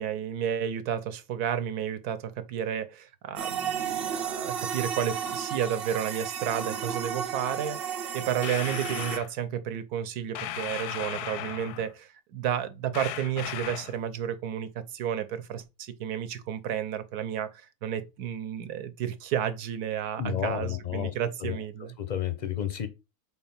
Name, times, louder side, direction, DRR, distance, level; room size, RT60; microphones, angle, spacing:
voice 1, 0.0-21.9, right 9 dB, 80° right, 1.3 m, -32 dB
sound 1, 3.4-9.2, right 7 dB, 55° right, 0.7 m, -33 dB
sound 2, 8.4-9.3 10.4-11.9 12.9-14.0, left 11 dB, 85° left, 1.1 m, -36 dB
voice 2, 20.2-21.1 21.4-21.6 22.0-22.9, left 9 dB, 55° left, 0.5 m, -31 dB
4.4 x 4.1 x 5.6 m
omnidirectional pair, 1.6 m